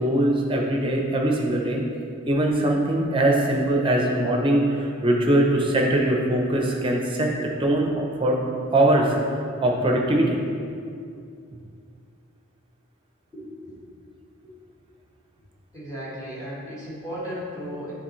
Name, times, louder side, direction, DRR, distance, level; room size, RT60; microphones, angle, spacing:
voice 1, 0.0-1.8 2.3-7.3 7.6-10.4, right 1 dB, 25° right, 0 dB, 0.6 m, -22 dB
voice 2, 13.3-13.8 14.4-14.5 15.7-17.9, equal, 15° left, -9 dB, 1.5 m, -35 dB
8.5 x 3.9 x 3.1 m, 2.4 s
head